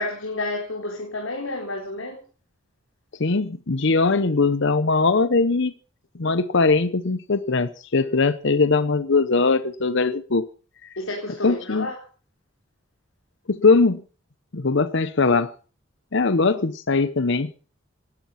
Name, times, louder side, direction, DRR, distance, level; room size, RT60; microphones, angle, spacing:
voice 1, 0.0-2.2 11.0-11.9, left 2 dB, 85° left, 4.3 m, -30 dB
voice 2, 3.2-5.7 6.2-10.5 10.8-10.9 11.4-11.9 13.5-14.0 14.5-15.5 16.1-17.5, left 3 dB, 65° left, 0.8 m, -20 dB
18.0 x 13.0 x 5.7 m
head